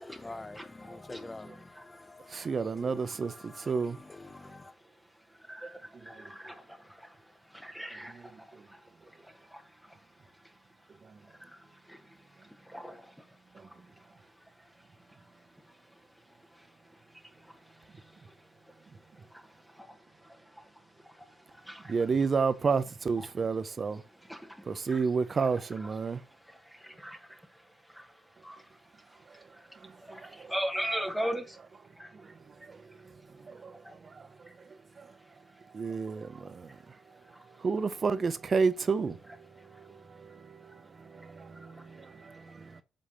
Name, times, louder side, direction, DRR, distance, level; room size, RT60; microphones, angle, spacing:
voice 1, 0.0-4.7, left 2 dB, 20° left, 0.7 m, -47 dB
voice 2, 0.5-1.2 1.7-2.5 4.3-22.1 23.2-23.3 24.2-25.1 26.0-31.6 31.9-32.3 32.6-33.0 33.6-34.0 34.4-34.5 35.1-35.8 36.3-37.6 39.6-40.0 40.7-40.8 41.1-42.8, equal, ahead, 1.2 m, -44 dB
voice 3, 2.3-4.0 6.1-6.3 8.5-8.6 11.0-11.2 13.5-13.7 21.9-24.0 24.7-26.2 29.3-29.5 29.7-30.5 32.1-35.1 35.7-37.0 37.6-42.8, right 5 dB, 40° right, 0.8 m, -32 dB
7.7 x 3.4 x 5.6 m
cardioid pair, 90°, 0 cm